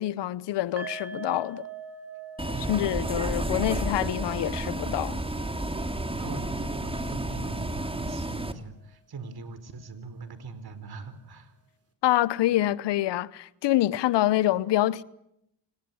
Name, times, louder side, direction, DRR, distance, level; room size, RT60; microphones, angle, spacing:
voice 1, 0.0-1.7 2.7-5.2 12.0-15.0, left 14 dB, 75° left, 1.0 m, -26 dB
sound 1, 0.8-8.0 8.2-8.4 8.8-8.9, right 5 dB, 35° right, 5.6 m, -44 dB
Bus, 2.4-8.5, right 1 dB, 15° right, 2.9 m, -31 dB
voice 2, 2.5-2.9 6.2-11.5, right 4 dB, 60° right, 4.4 m, -41 dB
27.5 x 18.5 x 9.8 m
supercardioid pair, 50°, 43 cm